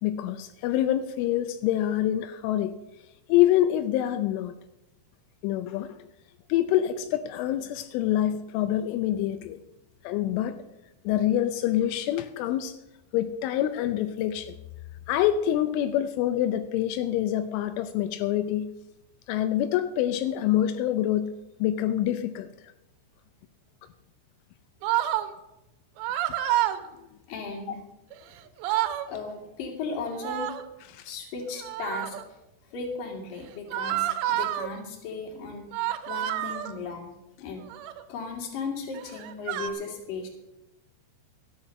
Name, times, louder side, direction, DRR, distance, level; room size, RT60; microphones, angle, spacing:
voice 1, 0.0-2.7 3.3-4.6 5.4-5.9 6.5-9.6 10.0-10.6 11.1-12.7 13.1-14.6 15.1-18.7 19.3-21.3 21.6-22.5 30.9-31.1, left 12 dB, 85° left, 9 dB, 3.1 m, -26 dB
sound 1, 24.8-25.3 26.0-26.8 28.1-28.2 28.5-29.1 30.1-30.7 31.6-32.2 33.7-34.7 35.7-36.7 37.6-38.0 38.9-39.7, right 13 dB, 75° right, 2.8 m, -28 dB
voice 2, 27.3-27.8 29.0-30.6 31.0-32.2 32.7-35.7 36.1-37.7 38.1-40.3, left 4 dB, 50° left, 3 dB, 3.5 m, -36 dB
13.5 x 9.9 x 6.5 m, 0.95 s
omnidirectional pair, 5.5 m